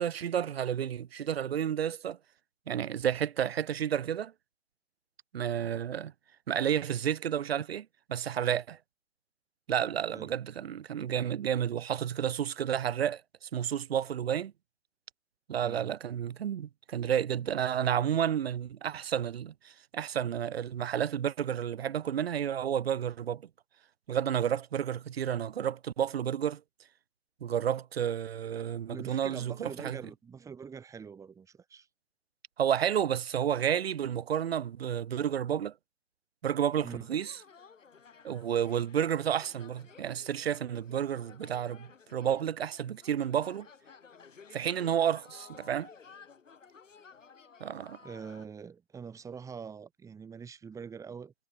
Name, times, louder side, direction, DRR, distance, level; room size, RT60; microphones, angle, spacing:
voice 1, 0.0-2.2 2.7-4.3 5.3-6.1 6.5-8.8 9.7-14.5 15.5-23.4 24.1-26.6 27.4-30.0 32.6-35.7 36.4-37.4 38.2-43.7 44.5-45.9 47.6-48.0, right 9 dB, 50° right, 1.2 m, -31 dB
voice 2, 15.6-15.9 28.9-31.9 36.8-37.1 48.0-51.3, right 6 dB, 10° right, 6.1 m, -44 dB
sound 1, 36.8-48.5, left 6 dB, 75° left, 6.4 m, -55 dB
hypercardioid pair, 150°, 38 cm